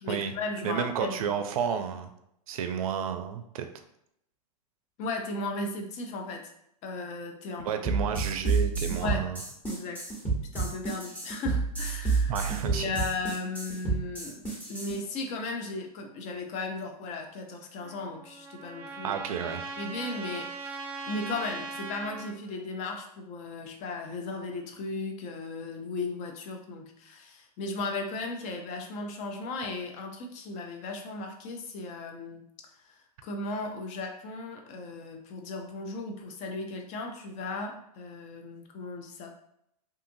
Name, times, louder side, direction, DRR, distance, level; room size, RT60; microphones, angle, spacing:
voice 1, 0.0-1.4 5.0-6.5 6.8-7.8 9.0-9.3 9.7-10.0 10.5-12.3 12.7-14.4 14.7-19.2 19.8-20.8 21.1-32.5 32.8-39.3, left 3 dB, 35° left, 3 dB, 0.6 m, -36 dB
voice 2, 0.6-2.1 2.5-3.7 7.6-9.4 12.3-12.9 19.0-19.6, right 7 dB, 60° right, 7 dB, 0.5 m, -31 dB
sound 1, 7.8-14.9, right 4 dB, 10° left, 1.1 m, -29 dB
Trumpet, 17.8-22.3, right 3 dB, 20° right, 1.0 m, -40 dB
2.7 x 2.4 x 2.6 m, 0.75 s
hypercardioid pair, 105°, 20 cm